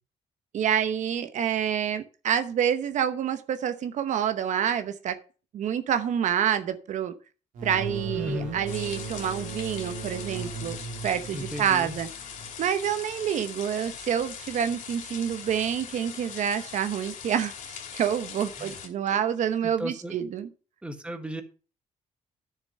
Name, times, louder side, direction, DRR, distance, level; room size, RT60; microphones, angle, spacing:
voice 1, 0.5-5.2 5.5-7.1 7.6-10.8 11.0-12.1 12.6-20.5, right 9 dB, 65° right, 10 dB, 0.9 m, -27 dB
sound 1, 7.5-13.0, right 4 dB, 85° right, 2.7 m, -38 dB
voice 2, 8.1-8.6 11.3-12.0 18.6-18.8 19.6-20.2 20.8-21.4, equal, 10° right, 7 dB, 1.5 m, -35 dB
sound 2, 8.7-18.9, left 8 dB, 80° left, 2.7 m, -41 dB
10.0 x 6.8 x 5.4 m, 0.36 s
cardioid pair, 125°, 13 cm